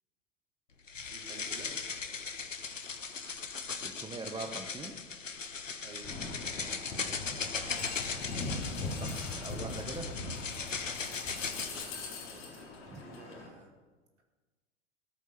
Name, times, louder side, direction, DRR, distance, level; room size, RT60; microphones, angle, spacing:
sound 1, 0.9-11.9, left 5 dB, 80° left, 1.1 m, -38 dB
voice 1, 1.1-1.7 5.8-7.1 11.3-13.7, right 3 dB, 70° right, 0 dB, 3.7 m, -53 dB
voice 2, 3.8-5.1 8.5-10.1 12.9-13.0, right 3 dB, 10° right, 3 dB, 1.0 m, -43 dB
sound 2, 6.0-13.5, left 3 dB, 35° left, 3.7 m, -40 dB
18.5 x 8.4 x 6.9 m, 1.3 s
figure-of-eight pair, 90°, 37 cm